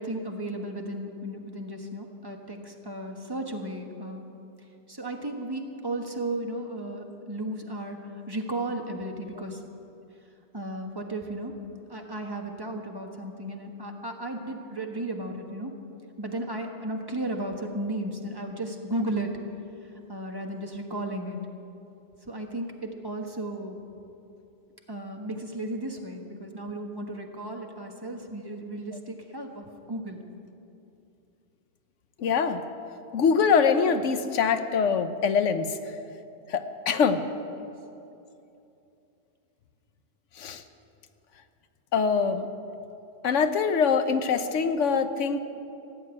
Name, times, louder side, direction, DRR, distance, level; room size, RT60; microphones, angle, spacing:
voice 1, 0.0-4.2 4.9-9.6 10.5-11.5 11.9-15.7 16.2-19.4 19.8-21.4 22.2-23.8 24.9-30.2 37.6-37.7, right 1 dB, 20° right, 2 dB, 1.3 m, -34 dB
voice 2, 32.2-32.6 33.1-35.8 36.5-37.2 40.4-40.6 41.9-42.5 43.2-45.4, left 6 dB, 85° left, 9 dB, 1.1 m, -24 dB
15.5 x 8.0 x 9.8 m, 2.8 s
omnidirectional pair, 1.2 m